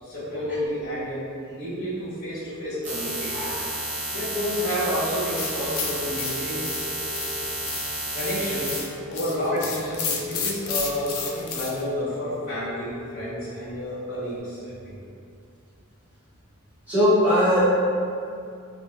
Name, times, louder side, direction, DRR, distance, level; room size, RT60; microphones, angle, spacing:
voice 1, 0.0-1.2 1.5-3.5 4.1-6.6 8.1-8.7 9.1-14.7, equal, 40° left, -15 dB, 1.3 m, -30 dB
sound 1, 2.4-3.5 4.4-5.4 6.4-7.4 8.4-9.4 10.4-11.4 12.3-13.4 14.3-14.4, left 4 dB, 75° right, 0.8 m, -40 dB
sound 2, 2.8-8.8, right 1 dB, 35° right, 0.6 m, -31 dB
sound 3, 5.4-11.8, left 5 dB, 70° left, 0.4 m, -32 dB
voice 2, 16.9-17.7, equal, 10° right, -15 dB, 1.2 m, -20 dB
3.2 x 2.2 x 2.6 m, 2.5 s
head